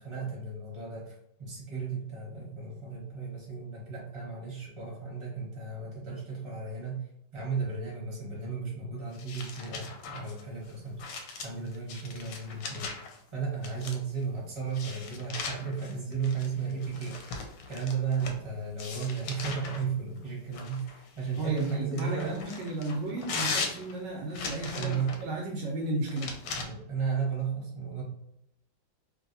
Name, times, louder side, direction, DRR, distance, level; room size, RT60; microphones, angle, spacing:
voice 1, 0.0-11.0 11.4-12.9 13.3-17.4 17.7-22.4 24.7-25.1 26.6-28.0, right 5 dB, 20° right, -5 dB, 1.0 m, -34 dB
sound 1, 9.1-13.2 13.6-14.2 14.7-18.4 18.8-19.8 20.5-25.3 26.1-26.6, left 4 dB, 70° left, 1.1 m, -39 dB
voice 2, 21.4-26.4, right 2 dB, 75° right, -1 dB, 1.1 m, -34 dB
3.2 x 2.6 x 2.6 m, 0.77 s
omnidirectional pair, 2.2 m